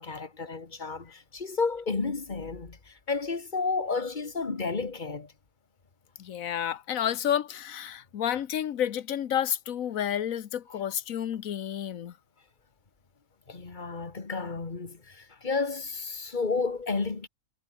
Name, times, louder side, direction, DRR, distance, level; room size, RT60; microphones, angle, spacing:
voice 1, 0.0-5.3 13.5-17.3, left 4 dB, 35° left, 1.9 m, -32 dB
voice 2, 6.2-12.1, left 10 dB, 85° left, 1.3 m, -30 dB
omnidirectional pair, 1.4 m